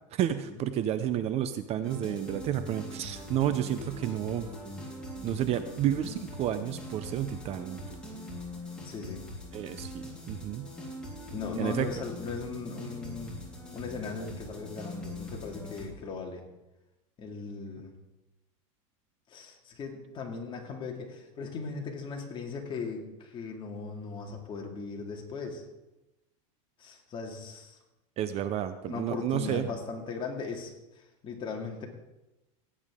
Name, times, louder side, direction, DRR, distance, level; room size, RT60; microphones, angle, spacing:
voice 1, 0.1-4.5 5.2-7.8 9.5-10.7 11.6-11.9 28.2-29.7, right 11 dB, 40° right, 11 dB, 0.6 m, -31 dB
sound 1, 1.8-15.9, left 1 dB, 5° left, 3.7 m, -42 dB
voice 2, 8.8-9.2 11.3-13.4 13.7-16.4 17.2-17.9 19.3-25.6 26.8-27.8 28.9-31.9, left 4 dB, 30° left, 1 dB, 2.3 m, -38 dB
17.5 x 8.7 x 3.7 m, 0.99 s
supercardioid pair, 130°, 17 cm